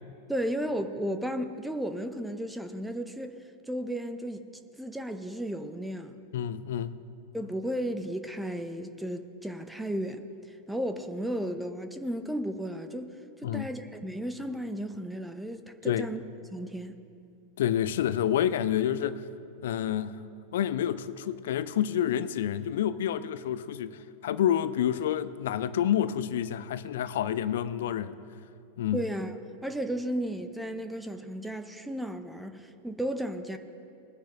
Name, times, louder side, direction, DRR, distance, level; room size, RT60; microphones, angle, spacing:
voice 1, 0.3-4.4 4.8-6.2 7.3-13.1 13.4-16.2 16.5-17.0 28.9-29.3 29.6-33.6, equal, 5° right, 7 dB, 0.7 m, -34 dB
voice 2, 6.3-7.0 13.4-13.7 15.9-16.1 17.6-19.2 19.6-20.2 20.5-28.2 28.8-29.0, left 10 dB, 60° left, 16 dB, 0.5 m, -28 dB
21.5 x 10.0 x 3.0 m, 2.6 s
figure-of-eight pair, 90°, 0 cm